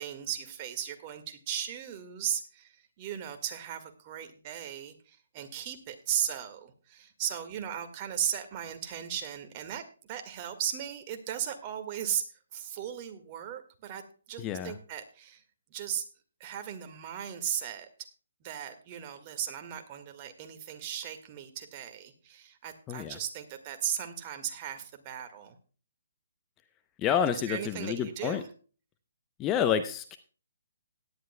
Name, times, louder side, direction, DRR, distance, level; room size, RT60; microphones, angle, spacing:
voice 1, 0.0-12.2 12.5-14.0 14.3-15.4 15.7-16.0 16.4-17.9 18.4-25.6 27.3-28.5, right 9 dB, 30° right, 7 dB, 1.8 m, -36 dB
voice 2, 14.4-14.7 22.9-23.2 27.0-28.4 29.4-30.2, left 8 dB, 20° left, 10 dB, 0.7 m, -29 dB
18.0 x 10.5 x 2.2 m, 0.37 s
hypercardioid pair, 145°, 0 cm